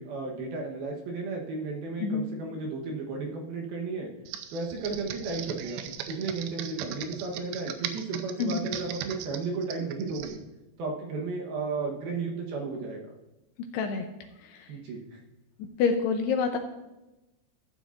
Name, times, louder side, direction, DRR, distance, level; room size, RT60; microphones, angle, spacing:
voice 1, 0.0-4.1 4.5-5.8 6.1-10.4 10.8-13.1 14.7-15.2, right 4 dB, 70° right, 0 dB, 2.6 m, -34 dB
Computer keyboard, 4.3-10.4, right 10 dB, 90° right, 3.0 m, -38 dB
voice 2, 13.6-14.1 14.4-14.8 15.6-16.6, left 5 dB, 80° left, 5 dB, 2.5 m, -28 dB
14.5 x 9.8 x 2.5 m, 1.0 s
omnidirectional pair, 5.2 m